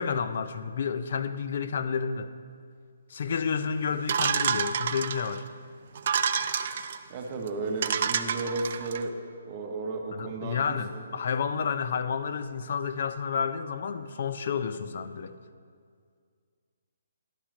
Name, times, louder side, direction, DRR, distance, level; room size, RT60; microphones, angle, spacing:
voice 1, 0.0-2.3 3.1-5.4 10.1-15.4, left 6 dB, 45° left, 12 dB, 0.4 m, -30 dB
sound 1, 4.1-5.4 6.0-7.0 7.5-7.6 7.8-9.0, right 7 dB, 40° right, 0.3 m, -28 dB
voice 2, 7.1-9.2 9.5-10.6 10.9-11.1, right 3 dB, 20° right, 2 dB, 0.8 m, -33 dB
11.5 x 6.1 x 5.1 m, 2.1 s
hypercardioid pair, 175°, 0 cm